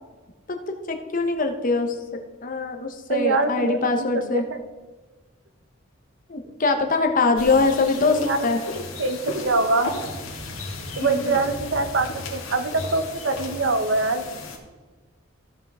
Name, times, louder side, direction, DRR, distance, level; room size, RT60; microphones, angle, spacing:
voice 1, 0.5-2.0 2.4-4.4 6.3-8.6 11.0-11.4, left 3 dB, 40° left, 5 dB, 0.9 m, -23 dB
voice 2, 3.1-4.4 8.0-8.5 9.0-9.9 11.0-14.2, right 3 dB, 65° right, 9 dB, 0.8 m, -24 dB
sound 1, 7.4-14.6, left 2 dB, 90° left, 1.8 m, -35 dB
15.0 x 5.6 x 3.6 m, 1.3 s
head